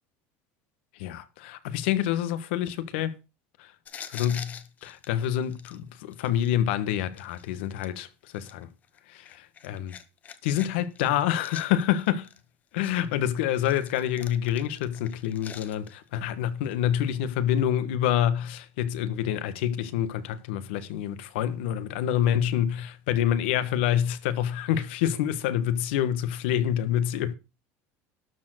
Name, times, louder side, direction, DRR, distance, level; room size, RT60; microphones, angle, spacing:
voice 1, 1.0-3.1 3.6-3.7 4.1-8.1 8.3-8.7 9.1-10.0 10.4-12.3 12.7-27.3, left 10 dB, 90° left, 1.3 m, -27 dB
sound 1, 3.8-6.5 7.1-7.9 8.3-10.7 10.9-12.4 12.8-16.1 16.6-16.8, left 8 dB, 25° left, 1.0 m, -45 dB
12.5 x 4.6 x 7.8 m
cardioid pair, 165°, 6 cm